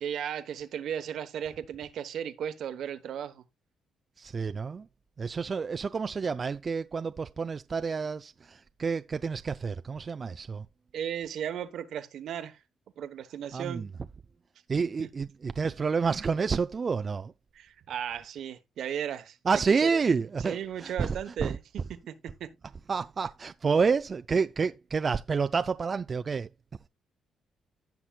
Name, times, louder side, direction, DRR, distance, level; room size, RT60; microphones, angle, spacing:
voice 1, 0.0-3.4 10.9-12.6 13.0-13.9 15.0-15.1 17.6-19.4 20.5-21.6 22.1-22.2 22.4-22.5, right 9 dB, 70° right, 1.0 m, -35 dB
voice 2, 4.2-4.9 5.2-10.7 13.5-13.9 14.7-17.3 19.4-21.6 22.9-26.5, right 5 dB, 40° right, 0.4 m, -29 dB
16.0 x 5.9 x 2.3 m
cardioid pair, 90°, 0 cm